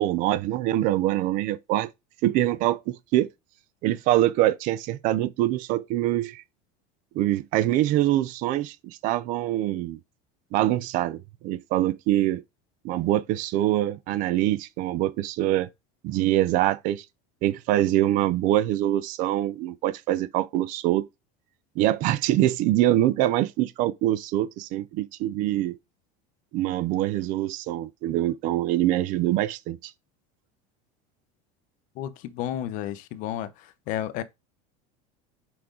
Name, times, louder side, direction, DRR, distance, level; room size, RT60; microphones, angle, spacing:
voice 1, 0.0-1.9 2.2-3.3 3.8-6.4 7.1-10.0 10.5-12.4 12.8-15.7 16.0-17.0 17.4-21.1 21.8-25.8 26.5-29.9, right 14 dB, 45° right, 0.6 m, -24 dB
voice 2, 32.0-33.5 33.9-34.2, left 11 dB, 45° left, 0.7 m, -31 dB
6.0 x 5.1 x 3.8 m
cardioid pair, 170°, 19 cm